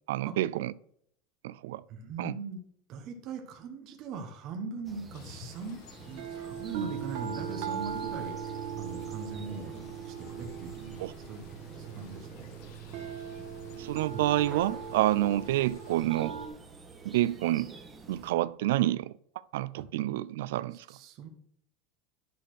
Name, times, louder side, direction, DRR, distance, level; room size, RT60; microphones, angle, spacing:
voice 1, 0.1-0.7 1.4-1.8 2.2-2.3 11.0-11.1 13.8-16.4 17.0-17.7 18.1-19.1 19.5-20.8, right 15 dB, 90° right, 0.4 m, -28 dB
voice 2, 1.9-2.6 2.9-8.4 8.8-11.4 11.7-12.5 14.1-14.4 19.8-19.9 20.7-21.3, right 4 dB, 45° right, 1.4 m, -41 dB
sound 1, 4.8-18.3, right 3 dB, 15° right, 1.6 m, -50 dB
sound 2, 5.1-16.1, left 7 dB, 70° left, 1.4 m, -56 dB
sound 3, 6.1-16.5, right 7 dB, 65° right, 1.7 m, -39 dB
11.0 x 4.3 x 6.4 m
supercardioid pair, 150°, 0 cm